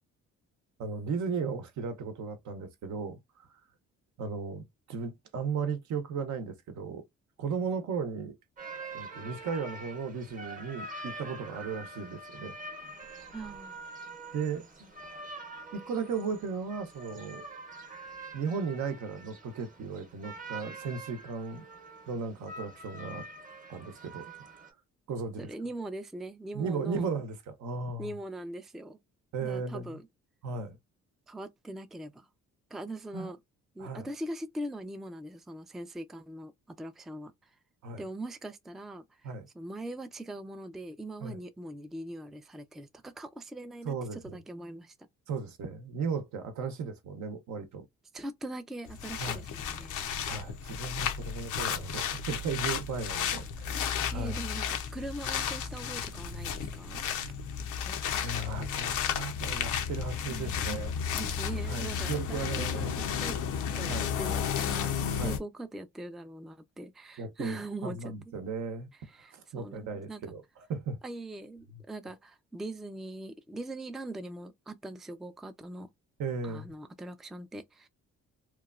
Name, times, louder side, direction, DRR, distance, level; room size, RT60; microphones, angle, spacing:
voice 1, 0.8-3.2 4.2-7.0 7.4-8.4 8.9-12.6 12.8-12.9 14.3-14.9 15.7-17.4 18.3-21.6 22.1-23.3 23.7-24.3 24.6-24.7 25.1-25.5 26.5-28.1 29.3-30.0 30.4-30.8 33.1-33.3 33.8-34.1 37.8-38.0 39.2-39.5 41.2-41.4 43.8-44.4 45.3-47.9 49.2-49.5 50.3-53.8 54.1-54.4 57.0-57.1 58.2-61.1 61.5-63.0 63.9-64.1 65.2-65.4 67.2-68.9 69.3-70.4 70.7-71.0 71.7-71.8 76.2-76.7, right 5 dB, 70° right, 0.8 m, -36 dB
sound 1, 8.6-24.7, right 2 dB, 25° right, 0.8 m, -45 dB
voice 2, 13.3-13.7 25.4-27.1 28.0-29.0 29.4-30.0 31.3-32.3 32.7-33.4 33.8-37.5 38.0-39.0 39.5-44.9 48.1-50.1 53.3-53.4 53.9-57.1 57.8-58.4 60.3-63.4 63.7-68.1 69.1-70.2 71.0-75.9 76.4-77.9, right 1 dB, ahead, 0.3 m, -41 dB
sound 2, 48.9-65.4, left 7 dB, 85° left, 0.7 m, -33 dB
3.0 x 2.2 x 2.4 m
cardioid pair, 90°, 30 cm